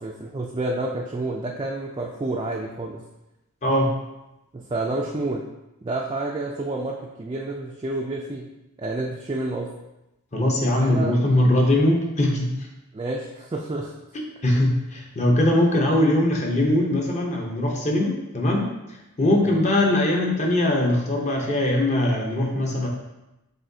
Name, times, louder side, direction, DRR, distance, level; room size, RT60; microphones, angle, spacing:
voice 1, 0.0-3.0 4.5-5.4 5.8-8.5 8.8-9.7 10.8-11.2 12.9-13.9 15.4-15.5 19.4-19.6, right 2 dB, 20° right, -2 dB, 0.3 m, -29 dB
voice 2, 10.3-12.5 14.4-18.7 19.2-22.9, left 1 dB, 30° left, 0 dB, 0.8 m, -21 dB
7.4 x 2.7 x 2.7 m, 0.95 s
head